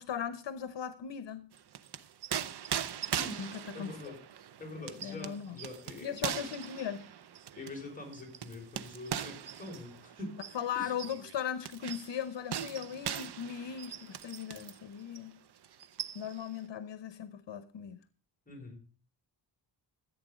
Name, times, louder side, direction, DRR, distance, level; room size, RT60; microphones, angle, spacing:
voice 1, 0.0-1.5 3.4-4.1 5.0-5.6 6.0-7.0 10.5-15.4 16.1-18.0, left 8 dB, 75° left, 13 dB, 1.0 m, -38 dB
sound 1, 1.5-14.8 15.1-15.3 15.6-16.5, right 9 dB, 65° right, 0.8 m, -40 dB
voice 2, 3.1-4.2 4.6-6.4 7.6-10.4 10.7-10.9 18.5-18.8, left 2 dB, 20° left, 0 dB, 5.5 m, -45 dB
15.0 x 8.4 x 5.0 m, 0.37 s
wide cardioid pair, 140°, 43 cm